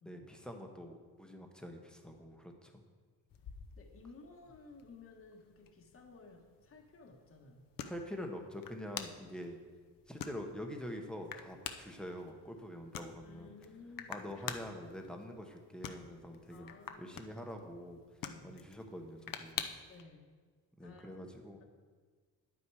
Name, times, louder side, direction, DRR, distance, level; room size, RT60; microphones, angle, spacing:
voice 1, 0.0-2.8 7.8-9.6 10.1-13.5 14.1-18.0 18.4-19.6 20.8-21.6, equal, ahead, 3 dB, 1.1 m, -45 dB
sound 1, 3.3-20.0, left 8 dB, 55° left, 0.7 m, -48 dB
voice 2, 3.7-7.7 13.2-14.5 16.5-17.3 18.2-18.6 19.9-20.3 20.8-21.2, left 3 dB, 35° left, 1 dB, 1.3 m, -56 dB
10.0 x 8.7 x 4.8 m, 1.5 s
cardioid pair, 125°, 41 cm